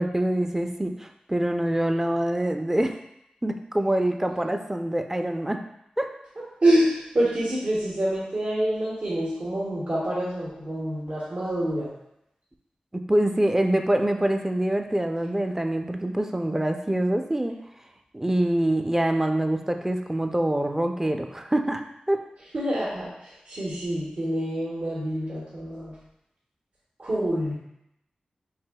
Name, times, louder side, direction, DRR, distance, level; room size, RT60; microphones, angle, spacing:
voice 1, 0.0-3.0 3.4-5.6 6.0-6.1 12.9-17.5 18.1-22.2, right 1 dB, 15° right, 5 dB, 0.4 m, -25 dB
voice 2, 6.6-11.9 22.5-26.0 27.0-27.6, right 1 dB, 70° right, -8 dB, 1.2 m, -26 dB
4.9 x 3.5 x 2.2 m, 0.81 s
cardioid pair, 45°, 3 cm